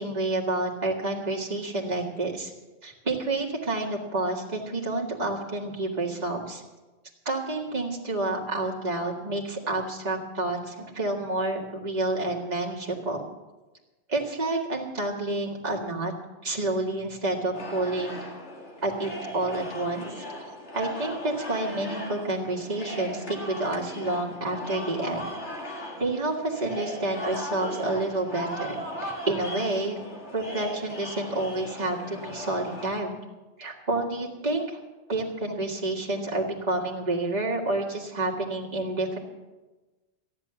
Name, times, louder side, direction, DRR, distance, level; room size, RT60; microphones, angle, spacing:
voice 1, 0.0-2.5 2.8-6.6 7.3-13.2 14.1-16.1 16.4-18.2 18.8-20.3 20.7-25.3 26.0-30.0 30.3-33.1 33.6-34.8 35.1-39.2, right 2 dB, 35° right, -2 dB, 2.1 m, -29 dB
sound 1, 17.5-32.9, left 1 dB, 80° left, 2.3 m, -38 dB
14.0 x 10.5 x 6.9 m, 1.2 s
omnidirectional pair, 1.2 m